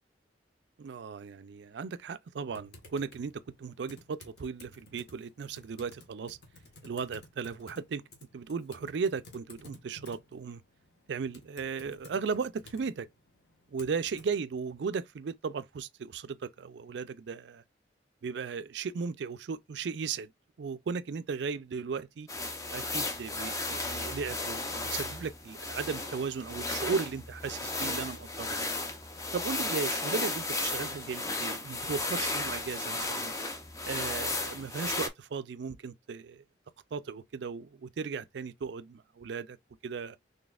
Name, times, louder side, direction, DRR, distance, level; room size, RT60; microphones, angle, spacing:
voice 1, 0.8-3.3 3.6-6.4 6.8-8.0 8.3-10.6 11.1-13.1 13.7-17.6 18.2-20.3 20.6-22.3 22.7-28.6 29.3-33.3 33.8-36.4 36.9-39.6 39.8-40.2, right 5 dB, 70° right, 0.4 m, -36 dB
Typing, 2.5-14.4, left 2 dB, 65° left, 1.2 m, -55 dB
sound 1, 22.3-35.1, left 2 dB, 15° left, 0.5 m, -34 dB
4.0 x 3.2 x 2.4 m
head